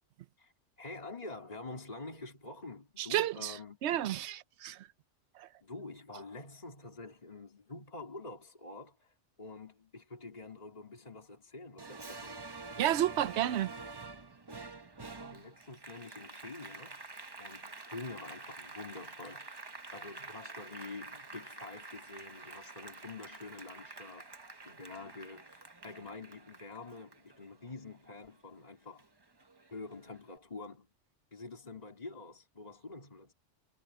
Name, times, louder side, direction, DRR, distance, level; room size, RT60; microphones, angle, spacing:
voice 1, 0.8-3.8 5.6-12.4 15.0-19.6 19.9-24.3 24.6-29.1 29.7-30.9 31.3-33.3, left 3 dB, 30° left, 3.2 m, -47 dB
voice 2, 3.0-3.6 3.8-4.8 5.4-5.5 12.8-13.7, right 12 dB, 70° right, 0.9 m, -31 dB
Applause, 11.8-28.6 29.0-30.2, right 3 dB, 20° right, 0.9 m, -48 dB
omnidirectional pair, 1.3 m